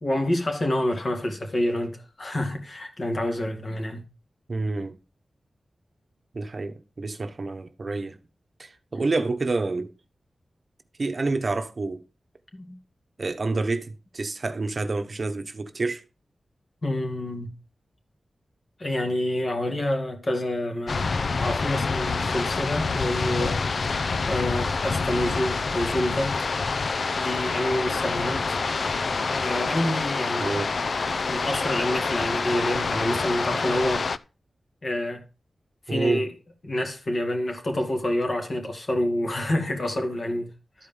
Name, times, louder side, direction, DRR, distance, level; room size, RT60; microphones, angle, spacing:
voice 1, 0.0-4.0 12.5-12.8 16.8-17.5 18.8-21.1 21.4-23.6 24.3-26.5 27.2-28.6 29.3-30.6 31.3-34.1 34.8-35.2 35.9-36.3 36.6-40.5, left 1 dB, 45° left, 2.4 m, -27 dB
voice 2, 4.5-5.0 6.3-8.2 8.6-9.9 11.0-12.0 13.2-16.0 30.4-30.7 35.9-36.2, right 3 dB, 45° right, 0.9 m, -28 dB
sound 1, 20.9-34.2, left 4 dB, 60° left, 0.5 m, -27 dB
12.5 x 5.0 x 5.5 m
wide cardioid pair, 115°, 0 cm